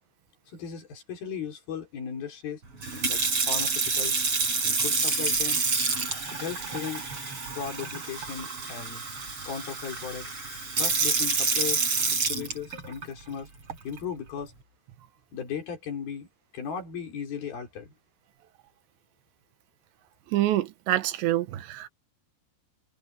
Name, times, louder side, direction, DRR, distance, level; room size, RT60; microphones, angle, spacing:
voice 1, 0.5-2.6 3.1-3.2 3.5-4.2 4.6-5.6 6.3-7.1 7.5-9.0 9.4-10.3 10.8-13.5 13.8-14.5 15.3-16.3 16.5-17.9, left 7 dB, 60° left, 6.0 m, -36 dB
Sink (filling or washing) / Fill (with liquid), 2.8-13.0 13.7-14.0, right 4 dB, 30° right, 6.1 m, -28 dB
voice 2, 20.3-21.9, right 14 dB, 90° right, 3.4 m, -26 dB
omnidirectional pair, 5.0 m